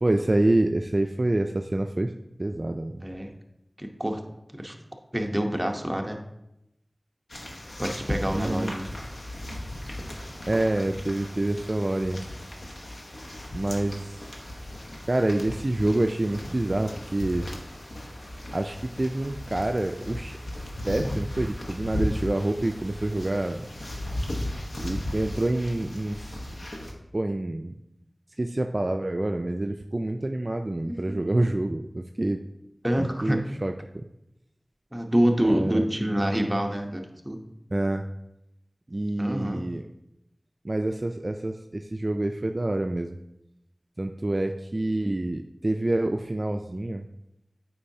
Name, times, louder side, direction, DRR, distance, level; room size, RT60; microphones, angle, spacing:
voice 1, 0.0-2.1 2.4-3.0 8.3-8.7 10.5-12.2 13.5-14.3 15.1-17.5 18.5-20.4 20.8-23.7 24.8-26.3 27.1-27.7 28.4-32.4 33.0-34.0 35.5-35.9 37.7-38.0 38.9-39.8 40.6-43.2 44.0-47.1, right 1 dB, 50° right, 5 dB, 0.3 m, -27 dB
voice 2, 3.0-3.3 3.8-4.2 4.5-4.7 5.1-6.2 7.8-8.9 30.8-31.2 32.8-33.4 34.9-37.4 39.2-39.6, equal, 15° right, 3 dB, 0.8 m, -26 dB
sound 1, 7.3-26.9, left 1 dB, 85° left, 0.9 m, -36 dB
sound 2, 8.0-24.1, equal, 45° left, 2.5 m, -51 dB
8.4 x 4.6 x 2.7 m, 0.87 s
wide cardioid pair, 45°, 0 cm